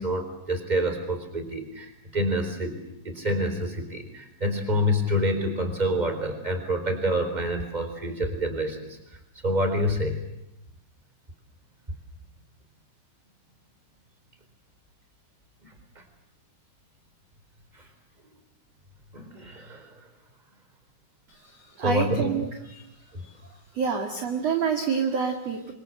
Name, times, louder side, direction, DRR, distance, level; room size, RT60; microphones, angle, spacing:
voice 1, 0.0-2.8 3.0-9.0 9.4-10.2 19.1-19.9 21.8-22.2, equal, 10° right, 7 dB, 3.4 m, -27 dB
voice 2, 21.3-22.9 23.2-23.3 23.7-25.7, right 6 dB, 45° right, 3 dB, 2.2 m, -28 dB
28.5 x 25.0 x 7.8 m, 0.88 s
omnidirectional pair, 5.9 m